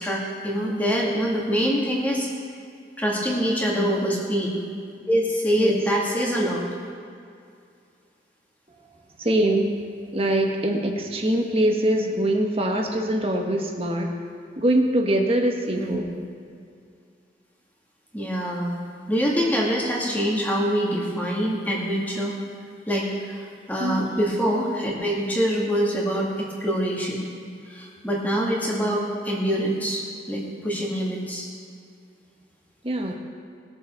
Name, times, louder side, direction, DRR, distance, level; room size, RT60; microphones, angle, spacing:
voice 1, 0.0-2.3 3.0-4.5 5.1-6.6 15.8-16.0 18.1-18.8 19.1-22.4 22.9-23.4 23.7-27.3 27.7-31.5, equal, 10° left, -3 dB, 2.0 m, -25 dB
voice 2, 9.2-9.8 10.1-14.1 14.6-16.1 23.8-24.0 32.8-33.1, right 1 dB, 30° right, 2 dB, 1.3 m, -23 dB
19.5 x 7.0 x 4.5 m, 2.3 s
head